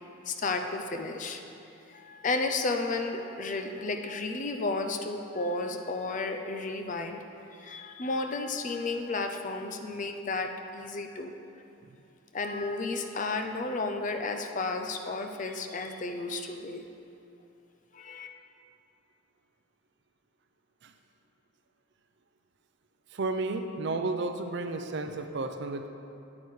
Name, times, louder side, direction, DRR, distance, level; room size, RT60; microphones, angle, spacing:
voice 1, 0.3-1.4 1.9-11.3 12.3-16.9 17.9-18.3, left 3 dB, 40° left, 5 dB, 0.5 m, -33 dB
voice 2, 23.1-25.9, right 3 dB, 55° right, 7 dB, 0.5 m, -32 dB
9.0 x 8.5 x 3.2 m, 2.7 s
head